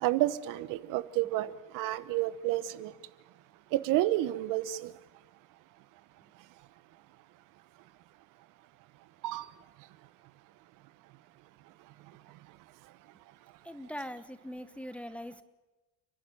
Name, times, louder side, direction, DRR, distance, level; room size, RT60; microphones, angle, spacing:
voice 1, 0.0-2.9 3.7-4.9 9.2-9.5, right 15 dB, 80° right, 15 dB, 1.1 m, -30 dB
voice 2, 13.6-15.4, equal, 5° left, 13 dB, 0.9 m, -41 dB
30.0 x 11.0 x 9.0 m, 1.1 s
cardioid pair, 130°, 32 cm